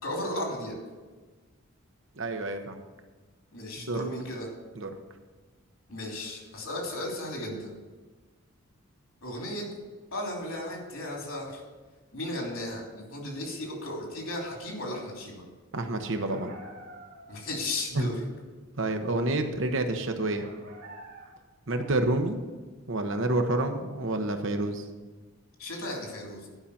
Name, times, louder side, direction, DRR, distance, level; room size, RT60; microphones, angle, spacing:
voice 1, 0.0-0.8 3.5-4.5 5.9-7.7 9.2-9.7 10.1-11.6 12.1-15.4 17.3-18.2 25.6-26.5, left 1 dB, 70° left, -1 dB, 3.1 m, -35 dB
voice 2, 2.2-2.8 3.9-4.0 4.8-4.9 15.7-16.5 17.9-18.2 18.8-20.5 21.7-22.4 22.9-24.8, right 2 dB, 60° right, 6 dB, 1.0 m, -28 dB
sound 1, 16.2-17.6 20.4-21.6, right 1 dB, 90° right, 2.2 m, -47 dB
11.5 x 5.7 x 7.0 m, 1.3 s
head